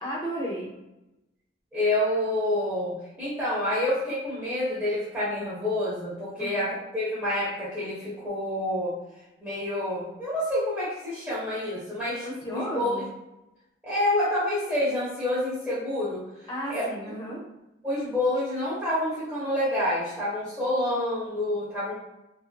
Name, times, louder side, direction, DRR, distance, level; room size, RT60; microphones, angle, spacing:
voice 1, 0.0-0.7 6.4-6.6 12.2-13.1 16.5-17.4, equal, 20° left, -5 dB, 0.9 m, -33 dB
voice 2, 1.7-8.9 9.4-12.9 13.8-16.2 16.7-16.8 17.8-21.9, left 1 dB, 10° right, -11 dB, 1.0 m, -28 dB
3.5 x 2.8 x 2.2 m, 0.93 s
head